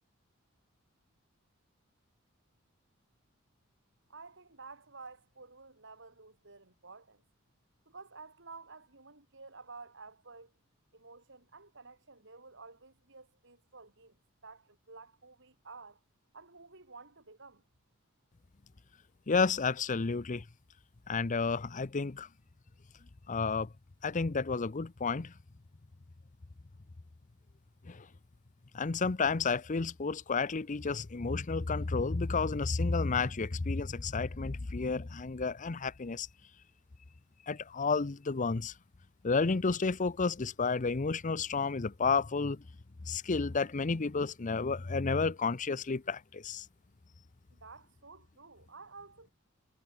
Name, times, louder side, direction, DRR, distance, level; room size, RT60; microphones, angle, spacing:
voice 1, 4.1-7.2 7.9-10.5 10.9-14.2 14.4-16.0 16.3-17.6 47.5-49.3, right 4 dB, 60° right, 5.7 m, -52 dB
voice 2, 19.3-20.4 21.1-22.3 23.3-23.7 24.0-25.3 27.8-28.1 28.7-36.3 37.5-38.7 39.2-42.6 43.1-46.7, left 4 dB, 35° left, 0.7 m, -31 dB
head